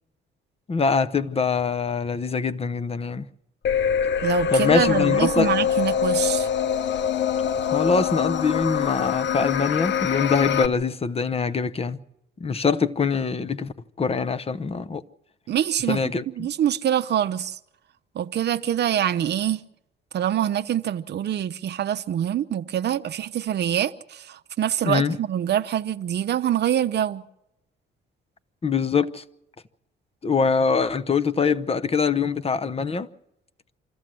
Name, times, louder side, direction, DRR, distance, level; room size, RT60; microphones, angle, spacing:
voice 1, 0.7-3.3 4.5-5.5 7.7-12.0 12.4-15.0 15.9-16.5 24.8-25.2 28.6-29.2 30.2-33.1, left 5 dB, 30° left, 0.9 m, -24 dB
sound 1, 3.6-10.7, left 8 dB, 65° left, 0.8 m, -24 dB
voice 2, 4.2-6.5 15.5-16.0 16.4-17.6 18.2-19.6 20.1-27.2, right 10 dB, 55° right, 0.7 m, -25 dB
25.5 x 14.0 x 7.6 m
cardioid pair, 90°, 20 cm